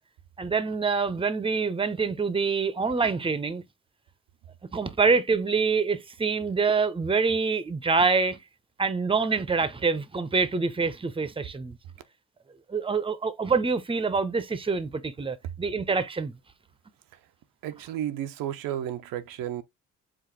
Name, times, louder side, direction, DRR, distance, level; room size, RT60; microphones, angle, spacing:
voice 1, 0.4-3.6 4.7-8.4 8.8-11.8 12.7-16.3, right 4 dB, 15° right, 0.8 m, -26 dB
voice 2, 17.6-19.6, right 11 dB, 80° right, 0.7 m, -33 dB
4.9 x 2.5 x 3.8 m
supercardioid pair, 70°, 34 cm